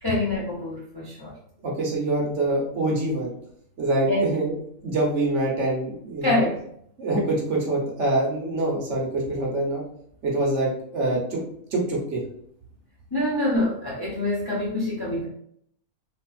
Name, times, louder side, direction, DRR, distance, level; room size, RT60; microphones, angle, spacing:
voice 1, 0.0-1.3 4.1-4.3 6.2-6.5 13.1-15.3, left 1 dB, 30° left, -6 dB, 0.4 m, -25 dB
voice 2, 1.6-3.3 3.8-4.5 4.8-6.4 7.0-9.8 10.2-11.4 11.7-12.2, right 2 dB, 55° right, -3 dB, 1.1 m, -25 dB
3.4 x 2.8 x 2.3 m, 0.69 s
omnidirectional pair, 1.6 m